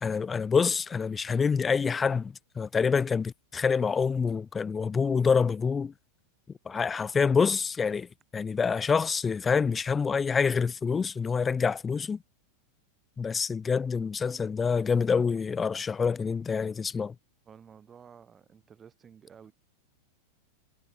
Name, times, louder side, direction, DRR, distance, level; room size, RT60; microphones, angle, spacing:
voice 1, 0.0-5.9 6.7-12.2 13.2-17.2, left 5 dB, 15° left, 0.4 m, -27 dB
voice 2, 17.5-19.5, right 7 dB, 20° right, 3.9 m, -52 dB
figure-of-eight pair, 90°, 0 cm